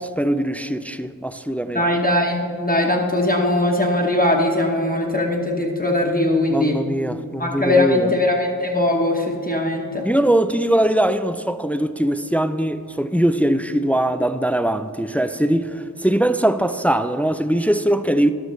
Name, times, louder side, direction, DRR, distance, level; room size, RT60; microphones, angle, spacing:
voice 1, 0.0-1.9 6.5-8.1 10.0-18.3, right 1 dB, 5° left, 0.4 m, -21 dB
voice 2, 1.7-6.8 7.4-10.1, left 1 dB, 25° left, 1.1 m, -20 dB
13.0 x 12.0 x 3.2 m
wide cardioid pair, 45°, 36 cm